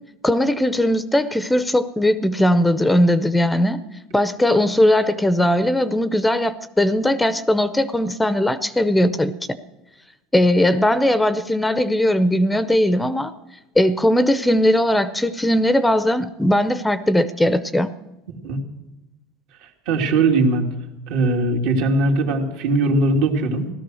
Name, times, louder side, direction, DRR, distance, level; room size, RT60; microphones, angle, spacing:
voice 1, 0.2-3.8 4.1-9.6 10.3-13.3 13.8-17.9, left 1 dB, 5° left, 13 dB, 0.6 m, -19 dB
voice 2, 19.9-20.7 21.1-23.7, right 2 dB, 70° right, 2 dB, 2.6 m, -19 dB
17.0 x 13.0 x 6.3 m, 0.99 s
supercardioid pair, 125°, 0 cm